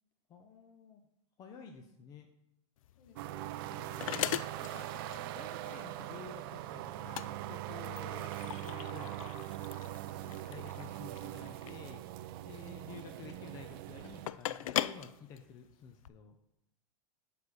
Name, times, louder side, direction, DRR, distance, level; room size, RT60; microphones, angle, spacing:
voice 1, 0.3-1.0 1.4-2.3 4.1-9.4 9.7-10.0 10.5-12.0 12.4-16.4, left 6 dB, 20° left, 5 dB, 0.5 m, -52 dB
voice 2, 1.5-1.9 2.9-3.6 4.5-4.8 7.8-8.1 10.2-10.5, left 4 dB, 55° left, 3 dB, 1.8 m, -60 dB
sound 1, 2.8-16.1, left 12 dB, 85° left, 0.4 m, -41 dB
sound 2, 3.2-14.3, right 14 dB, 45° right, 0.4 m, -42 dB
7.2 x 4.9 x 6.3 m, 0.85 s
supercardioid pair, 160°, 17 cm